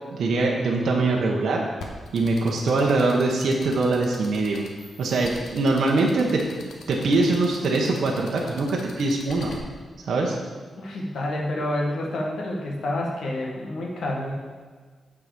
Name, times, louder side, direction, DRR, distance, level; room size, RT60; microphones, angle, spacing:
voice 1, 0.1-1.6 2.1-4.6 5.0-6.5 6.9-9.5 10.0-10.4, right 3 dB, 60° right, -2 dB, 1.1 m, -23 dB
sound 1, 1.8-9.6, left 4 dB, 85° left, 1.3 m, -42 dB
voice 2, 10.7-14.3, left 1 dB, 65° left, -1 dB, 1.6 m, -28 dB
9.1 x 4.9 x 6.8 m, 1.4 s
wide cardioid pair, 175°, 0 cm